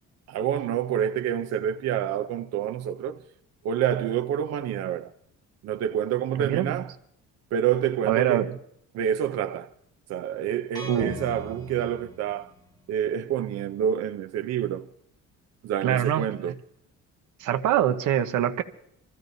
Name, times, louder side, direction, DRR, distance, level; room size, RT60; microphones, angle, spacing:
voice 1, 0.3-3.2 3.6-5.1 5.6-6.9 7.5-8.4 8.9-9.7 10.1-12.5 12.9-14.9 15.6-16.5, right 9 dB, 60° right, 0.6 m, -27 dB
voice 2, 6.4-6.8 8.0-8.6 10.8-11.2 15.8-16.5 17.4-18.6, right 11 dB, 80° right, 1.0 m, -25 dB
sound 1, 10.8-12.8, left 2 dB, 15° left, 1.3 m, -39 dB
27.0 x 14.5 x 2.7 m
cardioid pair, 155°, 30 cm